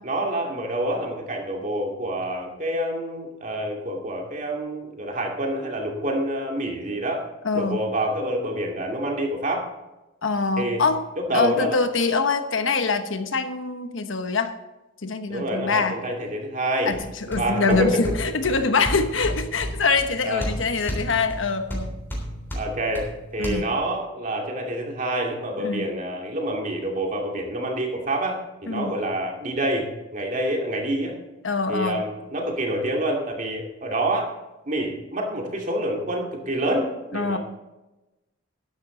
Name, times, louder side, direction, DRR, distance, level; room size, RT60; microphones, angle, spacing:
voice 1, 0.0-7.3 7.5-9.7 10.6-10.8 11.2-11.8 15.3-16.9 17.4-18.0 20.2-20.5 22.5-31.1 31.7-34.3 34.7-37.4, right 1 dB, 40° right, 0 dB, 2.5 m, -27 dB
voice 2, 7.4-7.8 10.2-11.0 11.3-14.5 15.0-16.0 16.9-21.9 23.4-23.7 25.6-25.8 28.7-28.9 31.4-32.0 37.1-37.4, left 4 dB, 80° left, 8 dB, 1.2 m, -24 dB
sound 1, 16.9-23.5, equal, 10° left, 3.5 m, -33 dB
12.5 x 11.0 x 3.9 m, 1.0 s
head